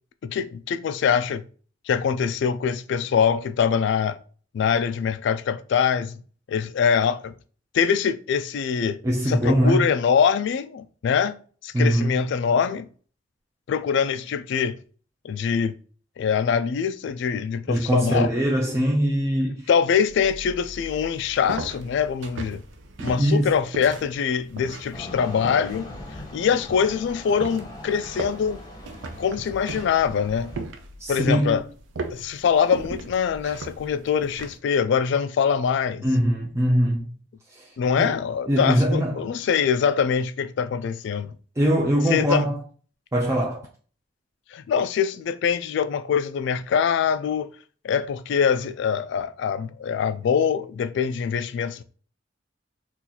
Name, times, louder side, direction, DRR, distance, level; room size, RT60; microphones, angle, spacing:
voice 1, 0.2-1.4 1.9-4.2 4.5-6.2 6.5-7.3 7.7-9.0 9.3-12.9 13.7-14.8 15.2-15.8 16.2-18.3 19.7-22.6 23.0-25.9 26.2-28.6 29.2-30.6 31.1-31.6 32.1-36.0 37.8-41.3 42.1-42.4 44.5-47.5 47.8-51.8, left 7 dB, 65° left, 0.3 m, -23 dB
voice 2, 9.0-9.9 11.7-12.2 17.7-19.7 23.0-23.5 31.0-31.6 36.0-37.1 37.5-37.7 38.0-38.2 38.5-39.3 41.6-42.6 43.1-43.7, equal, 15° right, 0.4 m, -22 dB
sound 1, 20.1-34.6, right 3 dB, 75° right, 0.5 m, -39 dB
sound 2, 24.9-30.6, left 1 dB, 20° left, 0.7 m, -40 dB
2.8 x 2.4 x 3.8 m
head